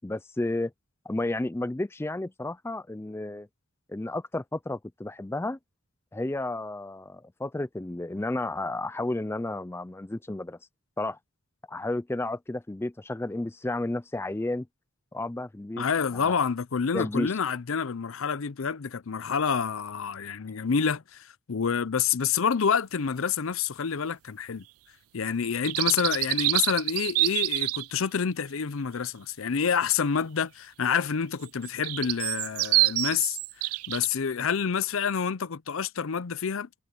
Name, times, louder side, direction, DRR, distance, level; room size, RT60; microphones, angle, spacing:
voice 1, 0.0-0.7 1.1-3.5 3.9-5.6 6.1-10.6 11.0-11.2 11.7-14.7 15.1-15.8 16.1-16.3 16.9-17.3, left 2 dB, 10° left, 0.4 m, -32 dB
voice 2, 15.8-24.6 25.1-36.8, left 6 dB, 70° left, 0.6 m, -28 dB
sound 1, 25.4-27.9 31.4-34.1, right 20 dB, 85° right, 0.3 m, -26 dB
head